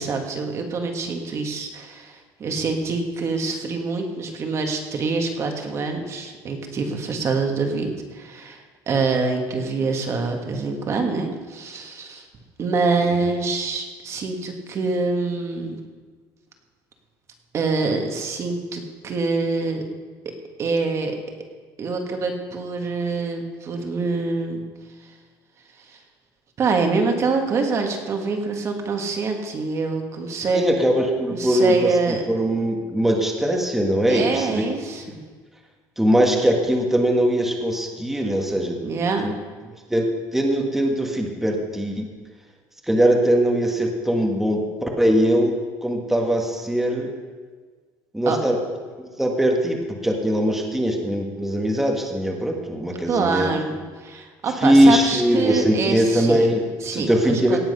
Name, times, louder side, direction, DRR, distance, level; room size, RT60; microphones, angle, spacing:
voice 1, 0.0-12.3 12.6-15.8 17.5-19.8 20.6-21.2 21.8-24.6 25.9-26.0 26.6-30.6 31.3-32.2 34.1-35.2 38.8-39.3 48.2-48.4 53.1-56.5 56.8-57.6, right 4 dB, 35° right, 4 dB, 1.7 m, -25 dB
voice 2, 30.5-34.6 36.0-38.8 39.2-39.3 39.9-40.1 40.3-42.1 42.9-45.5 45.8-47.1 48.1-48.6 49.0-53.5 54.6-56.6 56.9-57.6, equal, 5° right, 1 dB, 1.5 m, -21 dB
17.5 x 7.5 x 5.6 m, 1.5 s
cardioid pair, 150°, 8 cm